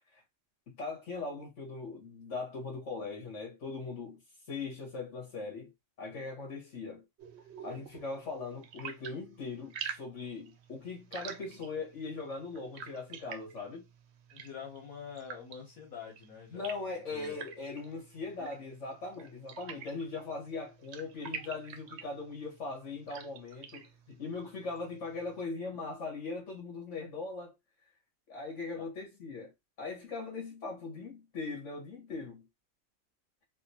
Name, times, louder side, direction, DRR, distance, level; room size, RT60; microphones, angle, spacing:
voice 1, 0.7-4.2 4.5-5.7 6.0-7.0 7.6-13.8 16.5-27.5 28.3-29.5 29.8-32.5, left 3 dB, 60° left, 2.0 m, -40 dB
sound 1, 7.2-25.4, right 7 dB, 65° right, 0.7 m, -48 dB
voice 2, 14.3-16.7 17.1-17.4 18.4-18.5 28.7-28.9, left 7 dB, 80° left, 1.4 m, -46 dB
4.2 x 2.2 x 2.8 m
omnidirectional pair, 1.5 m